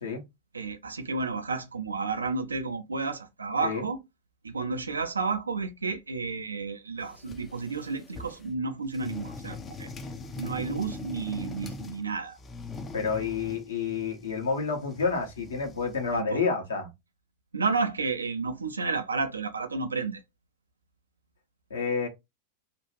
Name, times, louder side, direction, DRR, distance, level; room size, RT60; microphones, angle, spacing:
voice 1, 0.5-4.0 4.4-9.9 10.4-12.4 16.1-16.4 17.5-20.2, right 4 dB, 75° right, 0.4 m, -31 dB
sound 1, 7.0-8.5 8.9-12.1 12.4-16.2, left 3 dB, 20° left, 0.4 m, -42 dB
voice 2, 12.9-16.9 21.7-22.1, left 5 dB, 70° left, 1.0 m, -29 dB
2.8 x 2.3 x 2.9 m
figure-of-eight pair, 90°, 0 cm